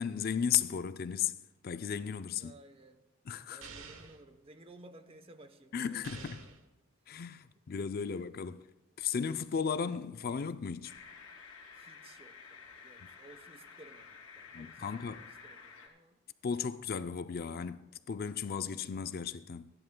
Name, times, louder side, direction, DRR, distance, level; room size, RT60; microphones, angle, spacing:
voice 1, 0.0-1.4 1.6-2.5 3.3-3.6 5.7-6.4 7.1-8.6 9.0-11.0 14.5-15.2 16.4-19.7, left 7 dB, 50° left, 0.4 m, -35 dB
voice 2, 2.3-3.0 3.5-6.6 7.3-7.7 8.0-8.2 11.7-16.2, right 2 dB, 30° right, 0.8 m, -57 dB
sound 1, 3.6-4.2 6.0-6.6, right 5 dB, 85° right, 1.2 m, -49 dB
sound 2, 10.8-15.9, left 5 dB, 80° left, 2.6 m, -52 dB
27.5 x 11.0 x 2.2 m
head